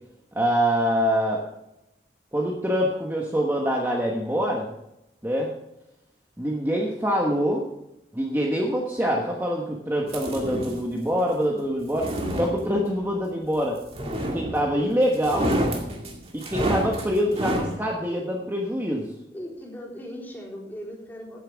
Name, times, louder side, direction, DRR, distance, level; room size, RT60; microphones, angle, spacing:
voice 1, 0.3-1.4 2.3-4.7 5.2-5.5 6.4-7.6 8.1-13.8 14.3-15.5 16.3-19.1, equal, 10° right, -1 dB, 1.3 m, -25 dB
sound 1, 10.1-10.9 11.8-13.0 13.9-14.8 15.1-17.8, right 1 dB, 35° right, 2.2 m, -28 dB
voice 2, 16.8-17.4 19.3-21.4, equal, 10° left, -5 dB, 3.9 m, -39 dB
16.0 x 8.9 x 3.5 m, 0.88 s
head